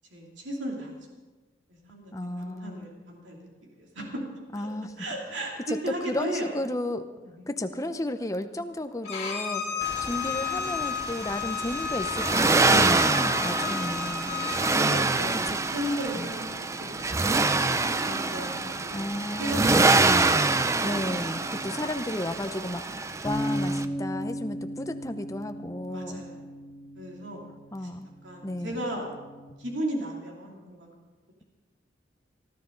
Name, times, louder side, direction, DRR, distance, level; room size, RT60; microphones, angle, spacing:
voice 1, 0.1-1.0 1.7-3.4 3.8-4.2 4.6-4.7 5.0-6.5 7.3-7.5 9.6-9.8 12.6-13.0 14.2-15.5 15.7-20.1 21.6-21.8 25.9-26.5 26.9-27.5 28.2-29.1 29.6-30.9, right 1 dB, 85° right, -1 dB, 2.8 m, -36 dB
voice 2, 2.1-2.9 4.5-4.9 5.7-5.8 6.1-7.0 7.5-14.3 15.5-15.6 16.1-16.3 18.9-19.9 20.8-26.3 27.7-28.1 28.4-28.8, left 1 dB, 20° left, 8 dB, 0.7 m, -33 dB
Bowed string instrument, 9.0-14.6, left 9 dB, 40° left, 5.3 m, -33 dB
Accelerating revving vroom, 9.8-23.8, right 3 dB, 15° right, 0.4 m, -26 dB
sound 1, 23.2-29.5, equal, ahead, 2.4 m, -36 dB
19.0 x 13.0 x 3.9 m, 1.3 s
head